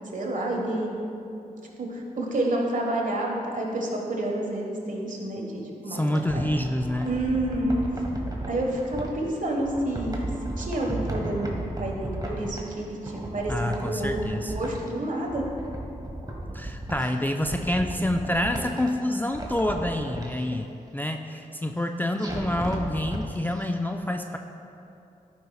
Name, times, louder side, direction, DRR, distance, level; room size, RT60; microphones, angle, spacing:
voice 1, 0.1-0.9 1.8-6.0 6.3-6.4 7.0-7.8 8.5-10.3 10.6-15.5, right 1 dB, 55° right, 0 dB, 1.4 m, -29 dB
voice 2, 5.9-7.1 13.5-14.5 16.5-24.4, left 1 dB, 10° left, 4 dB, 0.4 m, -27 dB
sound 1, 5.9-9.1 9.6-12.8 13.0-14.9 15.2-17.1 17.4-18.9 19.3-20.3 22.2-23.2 23.6-23.7, right 1 dB, 25° right, 1.4 m, -34 dB
11.0 x 5.5 x 2.4 m, 2.7 s
supercardioid pair, 40°, 16 cm